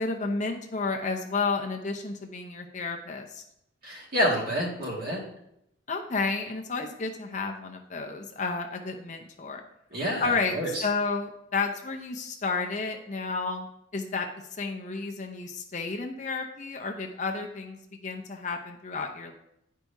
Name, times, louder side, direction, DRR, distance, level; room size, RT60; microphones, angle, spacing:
voice 1, 0.0-3.4 5.9-9.6 10.2-14.3 14.6-19.3, left 4 dB, 35° left, 3 dB, 0.6 m, -31 dB
voice 2, 3.8-5.2 9.9-10.8, equal, 45° right, -4 dB, 2.0 m, -28 dB
10.5 x 4.6 x 2.7 m, 0.78 s
head